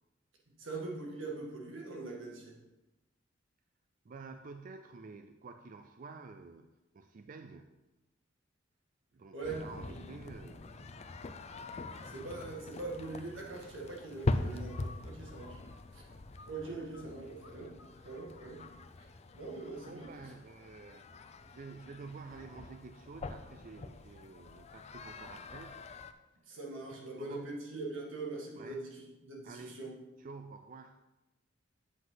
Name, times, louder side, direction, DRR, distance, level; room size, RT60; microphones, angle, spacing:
voice 1, 0.6-2.6 9.3-9.6 9.9-10.0 12.0-15.6 15.9-16.0 16.5-18.6 19.0-19.1 19.3-20.1 26.5-29.9, right 3 dB, 85° right, -2 dB, 2.1 m, -42 dB
voice 2, 4.0-7.7 9.1-11.0 12.1-12.3 19.8-21.1 21.5-25.8 26.9-27.5 28.6-28.8 29.4-29.8 30.2-31.0, right 4 dB, 45° right, 7 dB, 0.4 m, -50 dB
sound 1, 9.4-26.1, left 2 dB, 35° left, 0.4 m, -42 dB
sound 2, 11.5-12.0 14.3-17.1 17.4-17.5 17.8-18.8, left 3 dB, 65° left, 1.5 m, -57 dB
8.0 x 7.7 x 3.9 m, 1.0 s
head